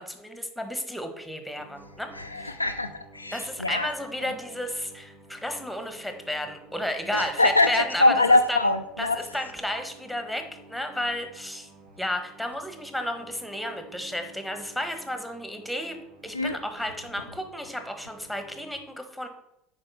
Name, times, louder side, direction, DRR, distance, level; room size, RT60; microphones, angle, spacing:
voice 1, 0.0-2.1 3.3-8.6 9.0-10.4 10.7-11.7 12.0-16.0 16.2-19.3, left 1 dB, ahead, 6 dB, 1.5 m, -32 dB
sound 1, 1.6-18.7, right 3 dB, 55° right, 2.1 m, -52 dB
voice 2, 2.1-3.9 4.2-4.3 7.1-9.2 16.3-16.6, left 2 dB, 90° left, 6 dB, 0.3 m, -23 dB
9.6 x 4.6 x 5.7 m, 0.81 s
figure-of-eight pair, 70°, 0 cm